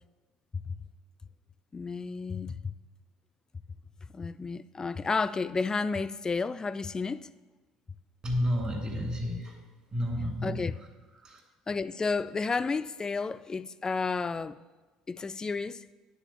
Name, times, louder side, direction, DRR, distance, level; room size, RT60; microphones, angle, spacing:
voice 1, 1.7-2.7 4.1-7.3 10.4-10.7 11.7-14.6 15.1-15.8, left 4 dB, 25° left, 0.3 m, -31 dB
voice 2, 8.2-9.6 9.9-10.6 11.2-11.4, equal, 35° right, 2.4 m, -31 dB
9.1 x 4.0 x 7.0 m
hypercardioid pair, 65°, 3 cm